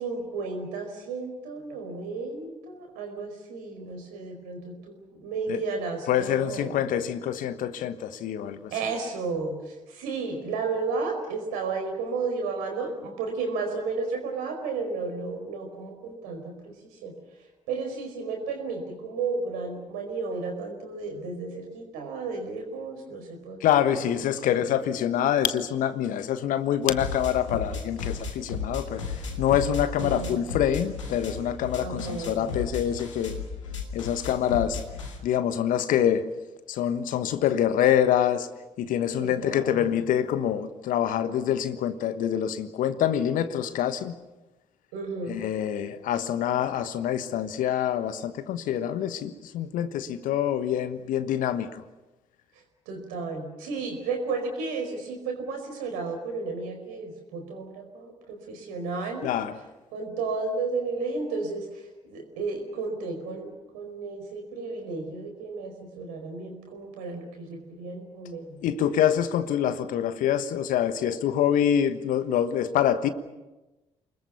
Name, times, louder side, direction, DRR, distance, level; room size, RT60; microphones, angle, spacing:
voice 1, 0.0-6.7 8.7-16.7 17.0-17.1 17.7-23.6 23.9-24.1 30.0-30.4 31.8-32.5 39.2-39.9 44.9-45.4 52.9-59.3 59.9-61.7 62.1-68.6, right 4 dB, 70° right, 4.9 m, -33 dB
voice 2, 6.1-8.7 23.6-29.0 29.4-33.4 33.9-34.8 35.2-36.3 36.7-38.5 38.8-44.1 45.3-51.8 59.2-59.5 68.6-73.1, left 10 dB, 60° left, 1.3 m, -26 dB
sound 1, 26.8-35.2, left 5 dB, 85° left, 2.3 m, -35 dB
29.5 x 21.0 x 7.0 m
figure-of-eight pair, 40°, 15 cm